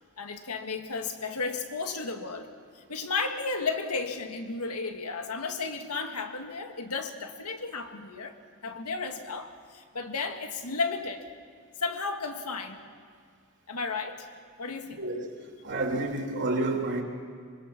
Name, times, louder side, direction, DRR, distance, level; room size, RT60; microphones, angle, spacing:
voice 1, 0.2-2.5 2.7-8.4 8.6-11.3 11.8-12.8 13.7-14.3 14.6-15.0, left 4 dB, 85° left, 2.0 m, -33 dB
voice 2, 15.0-17.0, right 2 dB, 55° right, 3.3 m, -30 dB
25.5 x 24.0 x 6.1 m
head